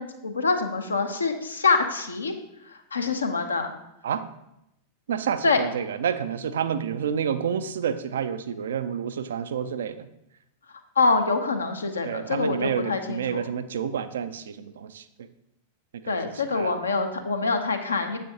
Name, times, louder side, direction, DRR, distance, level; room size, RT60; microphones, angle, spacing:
voice 1, 0.0-2.3 2.9-3.7 5.4-5.6 11.0-13.4 16.1-18.2, left 4 dB, 75° left, 6 dB, 0.7 m, -25 dB
voice 2, 5.1-10.1 12.0-15.0 15.9-16.1 16.5-16.7, right 8 dB, 65° right, 12 dB, 0.4 m, -29 dB
7.6 x 6.5 x 2.8 m, 0.83 s
figure-of-eight pair, 90°, 0 cm